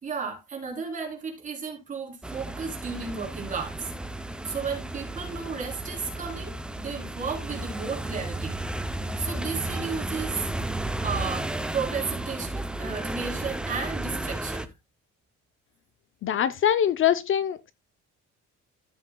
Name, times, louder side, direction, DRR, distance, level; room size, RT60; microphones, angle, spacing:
voice 1, 0.0-3.9 4.2-8.6 9.2-10.5 11.0-14.7, right 5 dB, 25° right, 3.4 m, -34 dB
sound 1, 2.2-14.7, right 1 dB, 5° right, 0.5 m, -33 dB
voice 2, 16.2-17.7, left 10 dB, 45° left, 0.5 m, -23 dB
14.0 x 7.4 x 2.2 m
cardioid pair, 180°, 29 cm